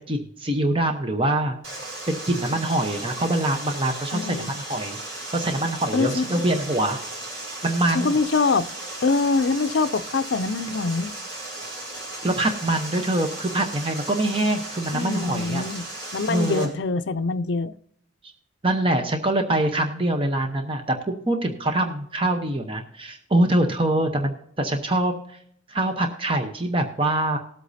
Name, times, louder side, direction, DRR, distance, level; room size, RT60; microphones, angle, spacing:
voice 1, 0.0-1.8 2.1-5.0 5.3-7.0 7.6-8.1 12.2-15.7 16.3-16.7 18.6-25.4 25.7-27.4, right 1 dB, 25° right, 0.9 m, -24 dB
Water, 1.6-16.6, right 2 dB, 85° right, 5.2 m, -36 dB
voice 2, 4.1-4.5 5.9-6.4 7.9-8.7 9.0-11.1 14.9-15.8 16.1-17.7, left 4 dB, 65° left, 0.5 m, -24 dB
19.5 x 8.2 x 2.7 m
head